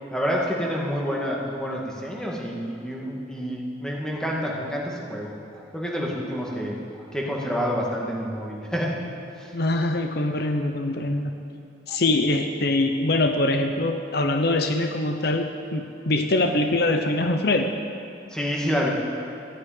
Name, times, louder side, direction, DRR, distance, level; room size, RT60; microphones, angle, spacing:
voice 1, 0.1-8.9 9.4-9.5 11.9-12.0 18.3-18.9, equal, 5° left, -3 dB, 2.1 m, -28 dB
voice 2, 9.5-11.3 11.9-17.7, left 2 dB, 60° left, 5 dB, 0.8 m, -23 dB
14.5 x 9.6 x 9.3 m, 2.6 s
head